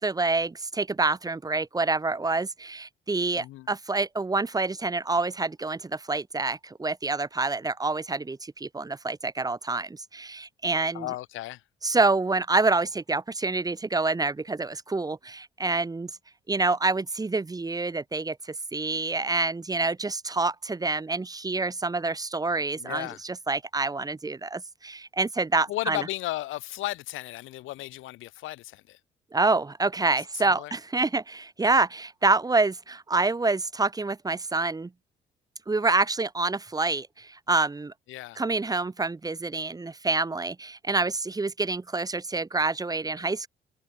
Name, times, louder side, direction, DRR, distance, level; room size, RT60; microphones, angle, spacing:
voice 1, 0.0-11.1 11.8-16.1 16.5-26.0 29.3-34.9 35.7-37.9 38.4-43.5, right 3 dB, 20° right, 0.9 m, -27 dB
voice 2, 3.4-3.7 10.9-11.6 22.8-23.2 25.7-29.0 30.3-30.8 38.1-38.4, left 16 dB, 90° left, 1.1 m, -35 dB
cardioid pair, 90°, 20 cm